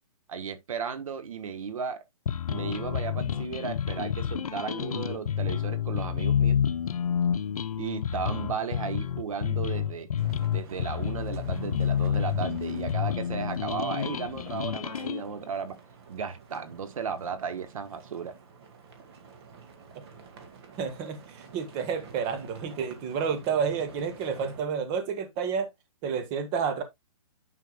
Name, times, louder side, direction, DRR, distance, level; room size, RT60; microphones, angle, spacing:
voice 1, 0.3-2.0 2.5-6.6 7.8-10.1 10.5-15.8 16.1-18.4, right 6 dB, 65° right, 1.2 m, -35 dB
sound 1, 2.3-15.2, left 8 dB, 75° left, 0.7 m, -29 dB
sound 2, 10.2-24.6, right 5 dB, 45° right, 2.0 m, -47 dB
voice 2, 20.8-25.7 26.0-26.8, right 6 dB, 25° right, 1.3 m, -30 dB
9.6 x 5.6 x 2.3 m
hypercardioid pair, 155°, 19 cm